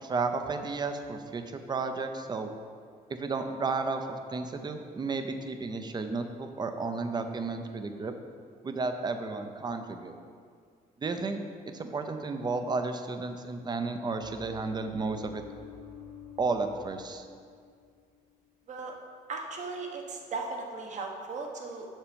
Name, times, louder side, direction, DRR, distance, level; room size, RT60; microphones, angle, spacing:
voice 1, 0.0-1.4 1.7-2.5 3.1-8.1 8.6-10.1 11.0-11.4 11.7-15.4 16.4-17.3, right 4 dB, 25° right, 7 dB, 0.7 m, -32 dB
sound 1, 14.2-17.7 17.9-18.3, left 6 dB, 80° right, 2.1 m, -49 dB
voice 2, 19.3-21.9, right 3 dB, 45° right, 2 dB, 1.3 m, -37 dB
7.3 x 6.6 x 5.2 m, 2.1 s
cardioid pair, 110°, 17 cm